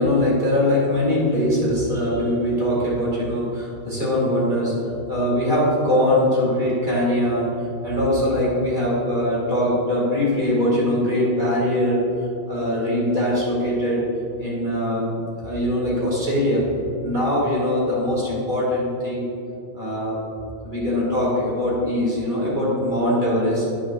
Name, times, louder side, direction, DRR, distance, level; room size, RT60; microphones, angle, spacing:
voice 1, 0.0-4.8 5.1-12.1 12.5-14.1 14.4-15.1 15.4-16.7 17.0-19.3 19.7-20.2 20.6-23.6, left 1 dB, 50° right, -6 dB, 2.4 m, -22 dB
10.0 x 10.0 x 2.6 m, 2.8 s
omnidirectional pair, 1.1 m